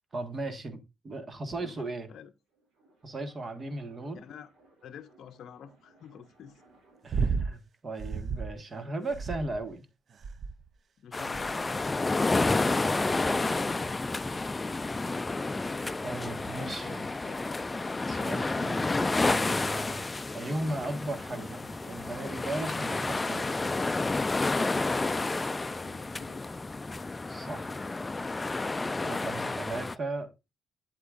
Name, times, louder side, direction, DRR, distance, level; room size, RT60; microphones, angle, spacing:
voice 1, 0.1-2.1 3.0-4.2 7.0-9.9 16.0-17.1 18.0-20.0 20.3-23.5 27.3-27.7 29.0-30.5, right 2 dB, 35° right, 1.5 m, -37 dB
voice 2, 1.6-2.3 4.1-4.5 4.8-6.6 7.1-7.3 11.0-14.0 16.8-17.6 25.8-26.5, left 8 dB, 65° left, 0.6 m, -49 dB
sound 1, 2.3-7.2, right 2 dB, 75° right, 3.6 m, -63 dB
sound 2, 7.1-7.5 8.0-8.6 9.1-9.7 10.2-10.7 11.3-11.7 12.4-12.7 13.7-13.8, right 5 dB, 50° right, 0.5 m, -32 dB
sound 3, 11.1-30.0, left 3 dB, 20° left, 0.4 m, -30 dB
8.2 x 7.9 x 2.5 m
cardioid pair, 90°, 0 cm